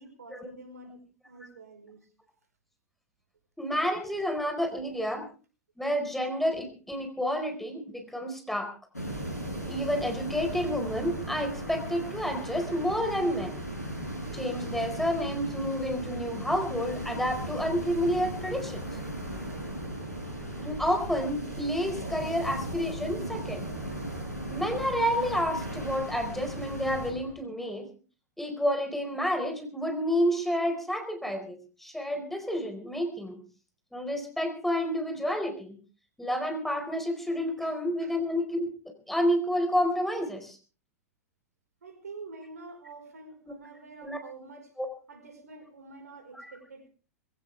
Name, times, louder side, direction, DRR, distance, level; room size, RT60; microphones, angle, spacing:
voice 1, 0.0-2.1 37.6-37.7 38.0-38.1 41.8-44.7 45.1-46.9, right 3 dB, 70° right, 7 dB, 4.9 m, -47 dB
voice 2, 3.6-5.2 5.8-8.7 9.7-13.5 14.3-18.9 20.6-23.6 24.5-27.8 28.4-33.4 33.9-35.8 36.2-38.7 39.1-40.6 44.0-44.2 44.8-44.9 46.3-46.5, equal, 5° left, 5 dB, 4.6 m, -30 dB
sound 1, 8.9-27.1, right 1 dB, 90° left, 7.6 m, -37 dB
sound 2, 10.1-27.4, right 2 dB, 50° right, 6.5 m, -48 dB
21.5 x 17.5 x 3.5 m, 0.37 s
figure-of-eight pair, 95°, 9 cm